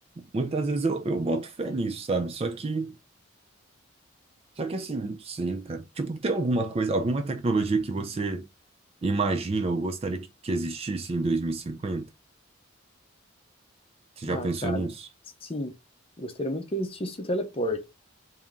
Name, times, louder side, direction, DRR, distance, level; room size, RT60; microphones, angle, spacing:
voice 1, 0.3-3.0 4.6-8.5 9.0-12.1 14.2-15.1, right 3 dB, 30° right, 0.3 m, -28 dB
voice 2, 14.3-14.9 15.4-15.7 16.2-17.8, equal, 25° left, 0.7 m, -31 dB
3.5 x 2.8 x 3.6 m
head